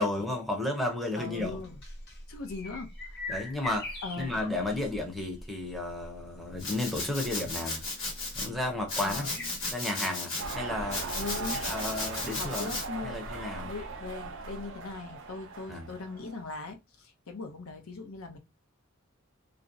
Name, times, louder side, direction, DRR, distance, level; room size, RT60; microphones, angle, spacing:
voice 1, 0.0-1.6 3.3-7.8 8.3-9.3 9.7-11.1 11.5-12.7 13.0-13.7 15.7-15.9, left 2 dB, ahead, 0.5 m, -33 dB
voice 2, 1.2-1.8 2.3-3.3 4.0-4.8 9.0-9.6 11.1-11.7 12.3-13.2 13.6-18.4, left 3 dB, 85° left, 0.6 m, -40 dB
sound 1, 1.4-9.7, left 2 dB, 50° left, 0.8 m, -43 dB
Domestic sounds home sounds, 6.6-8.5 8.9-10.5 10.9-12.8, left 2 dB, 70° left, 1.2 m, -35 dB
sound 2, 10.4-16.6, right 3 dB, 60° right, 0.4 m, -39 dB
2.5 x 2.0 x 2.5 m
head